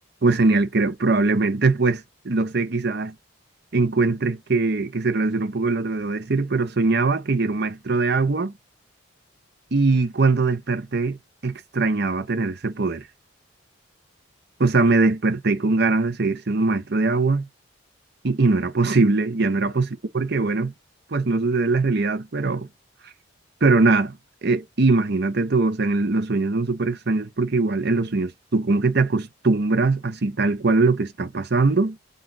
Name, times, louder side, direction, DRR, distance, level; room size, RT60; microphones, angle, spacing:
voice 1, 0.2-3.1 3.7-8.5 9.7-11.2 11.4-13.0 14.6-17.5 18.2-19.9 20.1-20.7 21.1-22.7 23.6-24.2 24.4-32.0, right 3 dB, 55° right, 0.8 m, -21 dB
4.6 x 2.6 x 3.9 m
head